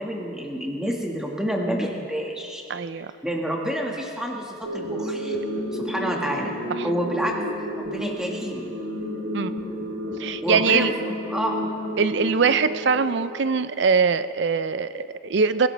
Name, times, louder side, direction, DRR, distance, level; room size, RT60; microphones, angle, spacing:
voice 1, 0.0-2.6 3.2-5.4 5.7-6.5 6.8-7.4 7.8-8.7 10.4-11.6, equal, 5° right, -1 dB, 1.7 m, -28 dB
voice 2, 2.7-3.1 6.8-6.9 9.3-9.5 10.2-10.9 12.0-15.7, right 5 dB, 55° right, 13 dB, 0.5 m, -22 dB
sound 1, 4.6-13.7, equal, 70° right, 3.8 m, -31 dB
24.5 x 16.5 x 3.4 m, 2.6 s
head